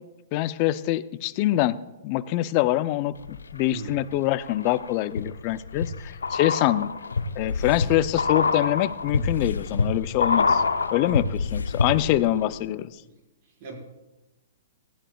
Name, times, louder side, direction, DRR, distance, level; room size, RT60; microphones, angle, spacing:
voice 1, 0.3-1.8 2.0-6.9 7.4-10.6 10.9-12.9, left 15 dB, 40° left, 15 dB, 0.6 m, -25 dB
sound 1, 3.2-3.9 4.4-12.3 12.5-12.6, left 4 dB, 80° left, 0.8 m, -27 dB
voice 2, 11.8-12.5 13.6-13.7, right 3 dB, 45° right, -1 dB, 4.8 m, -39 dB
18.5 x 14.0 x 2.4 m, 1.1 s
hypercardioid pair, 120°, 0 cm